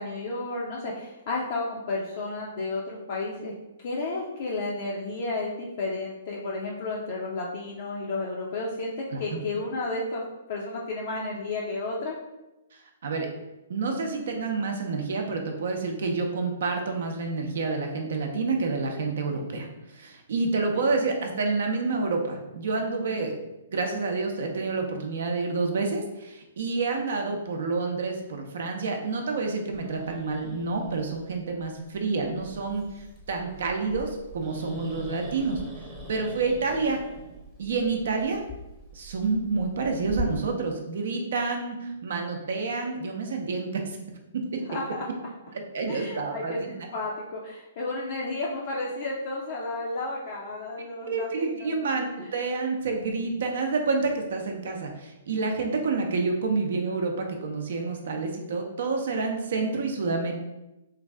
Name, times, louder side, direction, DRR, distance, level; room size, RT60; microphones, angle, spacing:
voice 1, 0.0-3.5 3.8-10.2 10.5-12.2 44.7-45.1 45.9-51.7 52.2-52.3, left 2 dB, 50° left, -3 dB, 0.5 m, -32 dB
voice 2, 13.7-23.4 23.7-35.6 36.1-37.0 37.6-38.4 38.9-44.0 45.5-46.7 51.1-52.1 52.3-60.3, right 3 dB, 60° right, 3 dB, 0.6 m, -28 dB
Growling, 29.7-40.2, right 1 dB, 5° right, 0.8 m, -43 dB
3.2 x 2.5 x 3.3 m, 0.98 s
figure-of-eight pair, 120°, 0 cm